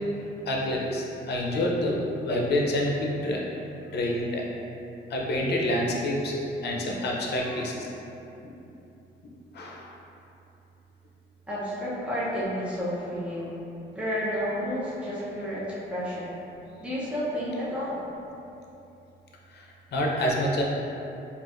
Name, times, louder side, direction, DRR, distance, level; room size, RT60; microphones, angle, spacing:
voice 1, 0.5-2.0 2.2-3.4 3.9-4.5 5.1-6.3 6.6-7.9 9.5-9.9 19.5-20.6, left 1 dB, 55° left, -2 dB, 0.7 m, -27 dB
voice 2, 11.5-13.5 13.9-16.4 16.8-18.0, equal, 5° right, -9 dB, 0.8 m, -31 dB
4.5 x 2.5 x 2.5 m, 2.9 s
cardioid pair, 90°, 20 cm